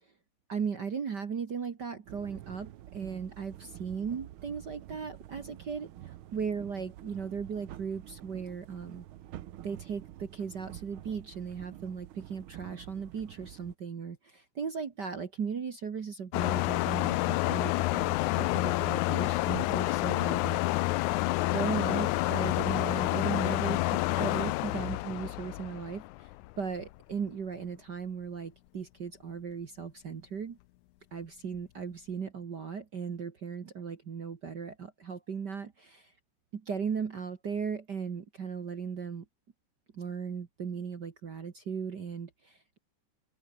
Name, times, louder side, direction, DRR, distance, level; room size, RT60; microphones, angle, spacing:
voice 1, 0.5-9.0 9.6-20.6 21.5-26.3 26.6-30.6 31.1-36.1 36.5-39.2 39.9-42.8, right 6 dB, 40° right, 1.7 m, -37 dB
sound 1, 2.1-13.8, right 13 dB, 80° right, 1.1 m, -48 dB
sound 2, 16.3-26.5, left 19 dB, 80° left, 2.1 m, -29 dB
open air
omnidirectional pair, 3.5 m